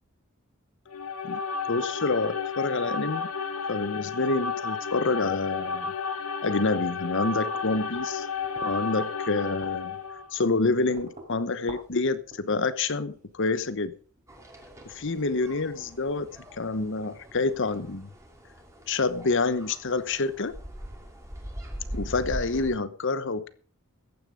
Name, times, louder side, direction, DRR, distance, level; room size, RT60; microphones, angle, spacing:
sound 1, 0.9-10.3, left 5 dB, 90° left, 1.5 m, -32 dB
voice 1, 1.7-3.3 3.7-5.9 6.4-8.3 8.6-10.0 10.3-13.9 15.0-16.3 16.6-18.1 18.9-20.5 21.9-23.5, left 3 dB, 55° left, 14 dB, 1.0 m, -27 dB
sound 2, 7.5-16.0, right 2 dB, 35° right, 3.7 m, -51 dB
sound 3, 14.3-22.8, equal, 15° right, 2.6 m, -42 dB
14.5 x 9.9 x 5.1 m, 0.42 s
head